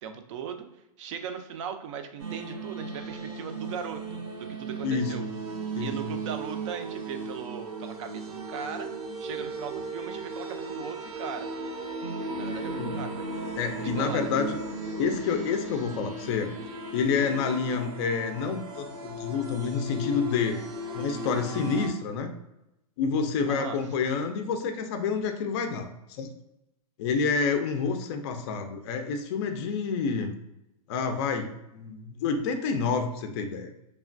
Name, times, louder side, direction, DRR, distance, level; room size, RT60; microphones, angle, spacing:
voice 1, 0.0-0.7 1.0-5.2 5.8-8.9 9.2-11.5 12.3-13.3 13.8-14.3 23.5-23.8, right 7 dB, 50° right, 8 dB, 0.4 m, -38 dB
sound 1, 2.2-21.9, right 2 dB, 75° right, 0.8 m, -36 dB
voice 2, 4.8-5.3 5.7-5.9 12.8-13.0 13.6-14.6 15.0-16.5 16.9-20.6 20.9-22.3 23.0-26.3 27.0-30.4 30.9-33.7, left 5 dB, 45° left, 6 dB, 0.4 m, -28 dB
3.2 x 2.2 x 2.5 m, 0.88 s
hypercardioid pair, 145°, 20 cm